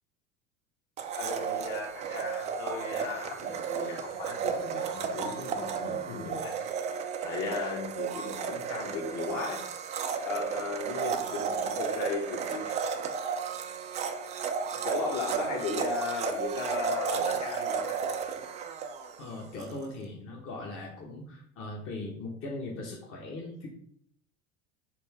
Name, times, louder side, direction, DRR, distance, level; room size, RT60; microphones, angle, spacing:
Domestic sounds home sounds, 1.0-19.8, right 6 dB, 20° right, 0.3 m, -33 dB
voice 1, 1.1-6.5 7.2-9.6 10.2-12.8 14.8-18.0, left 4 dB, 50° left, 1 dB, 1.3 m, -36 dB
voice 2, 19.2-23.7, left 2 dB, 35° left, -2 dB, 0.9 m, -39 dB
4.3 x 2.5 x 4.5 m, 0.66 s
figure-of-eight pair, 75°, 39 cm